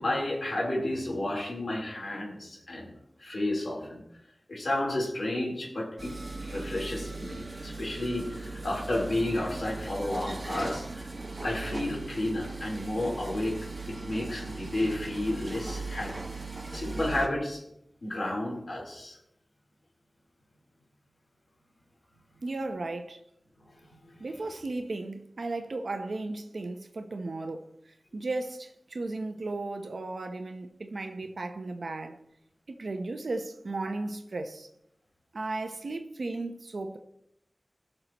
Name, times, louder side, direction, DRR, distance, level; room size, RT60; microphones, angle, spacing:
voice 1, 0.0-2.9 3.2-4.0 4.5-11.1 11.4-16.2 16.7-17.6 18.0-19.2 23.7-23.8 24.0-24.2, left 1 dB, 75° left, 3.7 m, -32 dB
sound 1, 6.0-17.3, right 3 dB, 50° right, 1.6 m, -39 dB
voice 2, 22.4-23.2 24.2-32.2 32.8-34.7 35.3-37.0, right 2 dB, 90° right, 0.8 m, -35 dB
17.5 x 6.6 x 3.0 m
wide cardioid pair, 70°, 0 cm